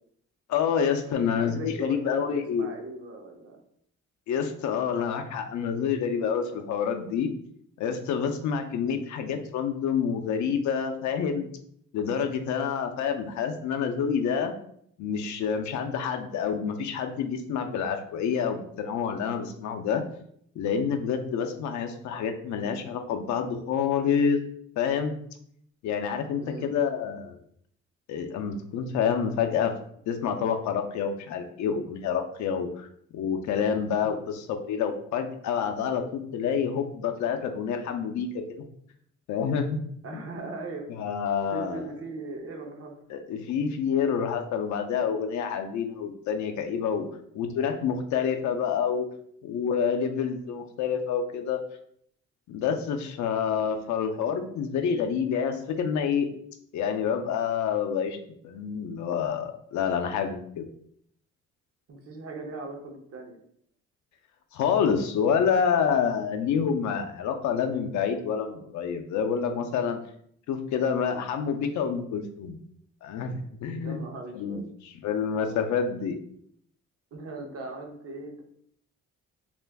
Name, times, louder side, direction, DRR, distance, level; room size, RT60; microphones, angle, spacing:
voice 1, 0.5-2.7 4.3-7.3 7.8-11.5 11.9-14.5 15.0-20.0 20.6-24.4 24.8-25.2 25.8-27.4 28.1-29.7 30.1-32.9 33.1-38.6 39.3-39.8 40.1-40.2 40.9-41.8 43.1-47.1 47.3-49.1 49.4-51.6 52.5-56.3 56.7-58.2 58.4-60.7 64.5-70.0 70.5-72.6 73.0-74.0 74.4-76.2, left 7 dB, 70° left, 5 dB, 0.5 m, -28 dB
voice 2, 1.1-3.6 26.3-26.7 34.0-34.2 40.0-40.9 41.5-42.9 61.9-63.4 73.8-74.6 77.1-78.4, right 3 dB, 50° right, 3 dB, 0.7 m, -39 dB
2.4 x 2.2 x 3.3 m, 0.67 s
cardioid pair, 90°, 30 cm